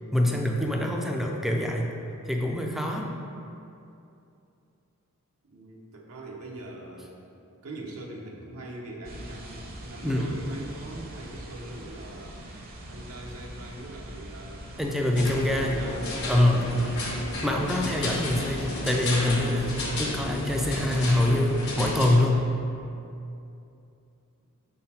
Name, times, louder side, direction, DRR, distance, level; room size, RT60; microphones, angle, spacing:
voice 1, 0.1-1.9 2.3-3.1 10.0-10.2 14.8-15.8 16.3-17.0 17.4-22.5, left 1 dB, ahead, 1 dB, 0.4 m, -25 dB
voice 2, 5.4-7.2 7.6-12.3 12.8-14.6 15.0-16.1, right 1 dB, 80° right, -1 dB, 0.8 m, -42 dB
sound 1, 9.0-21.2, right 1 dB, 45° right, 0.7 m, -42 dB
sound 2, 15.2-22.2, left 2 dB, 55° left, 1.0 m, -32 dB
6.2 x 4.0 x 4.2 m, 2.7 s
head